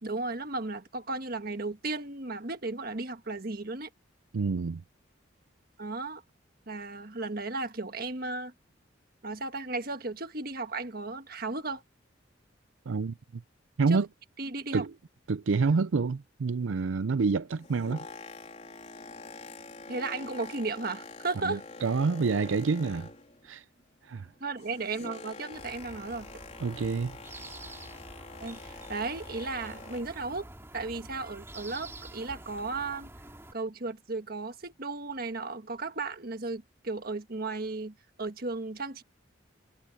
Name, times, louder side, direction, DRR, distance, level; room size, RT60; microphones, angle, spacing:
voice 1, 0.0-3.9 5.8-6.2 6.7-8.5 9.2-11.8 13.9-14.0 14.4-14.9 19.9-21.6 24.4-26.3 28.4-30.5 30.7-33.1 33.5-39.0, right 3 dB, 50° right, 1.5 m, -35 dB
voice 2, 4.3-4.8 12.9-13.4 13.8-14.1 14.7-14.9 15.3-18.1 21.4-23.1 23.4-23.6 24.0-24.3 26.6-27.2, right 4 dB, 80° right, 0.5 m, -28 dB
Boat Water vehicle, 17.5-23.5 23.8-30.2 30.9-31.0, left 3 dB, 35° left, 4.0 m, -46 dB
sound 1, 25.5-33.5, right 1 dB, 15° right, 2.9 m, -47 dB
head